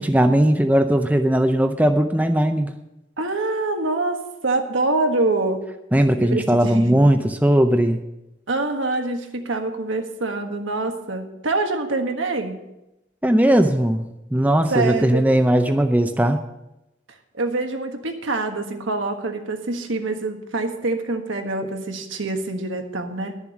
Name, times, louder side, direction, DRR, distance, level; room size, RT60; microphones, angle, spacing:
voice 1, 0.0-2.7 5.9-8.0 13.2-16.4, right 1 dB, 10° right, 6 dB, 0.5 m, -18 dB
voice 2, 3.2-5.6 6.2-7.2 8.5-12.6 14.7-15.2 17.4-23.4, right 2 dB, 85° right, 4 dB, 1.5 m, -25 dB
12.0 x 7.2 x 7.1 m, 0.92 s
head